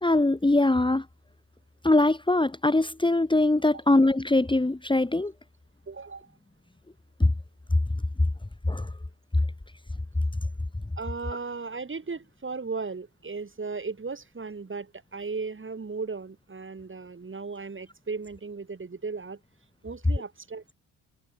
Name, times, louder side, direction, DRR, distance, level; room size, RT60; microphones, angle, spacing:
voice 1, 0.0-1.0 1.8-5.3 7.2-7.3 8.7-8.9, left 2 dB, 10° left, 2.5 m, -22 dB
voice 2, 5.9-6.3 11.0-19.4 19.8-20.7, right 4 dB, 25° right, 4.6 m, -36 dB
hypercardioid pair, 55°, 46 cm